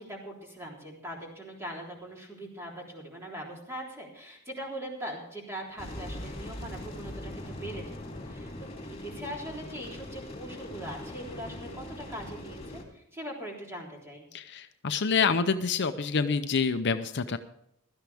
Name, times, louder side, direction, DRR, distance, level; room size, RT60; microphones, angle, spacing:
voice 1, 0.0-8.0 8.2-14.3, right 1 dB, 10° right, -2 dB, 3.5 m, -41 dB
sound 1, 5.8-12.8, left 1 dB, 30° left, 3.0 m, -41 dB
voice 2, 14.3-17.4, left 5 dB, 55° left, 9 dB, 0.6 m, -27 dB
16.5 x 13.0 x 3.5 m, 0.77 s
head